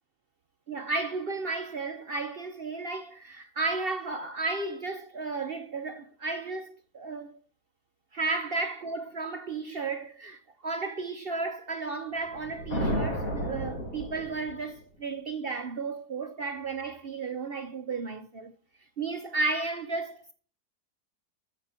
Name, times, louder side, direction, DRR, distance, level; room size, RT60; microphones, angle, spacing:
voice 1, 0.7-7.4 8.1-18.5 19.0-20.3, right 3 dB, 50° right, 0.8 m, -33 dB
sound 1, 12.3-14.8, equal, 60° left, 2.7 m, -32 dB
13.5 x 5.9 x 5.6 m
omnidirectional pair, 1.7 m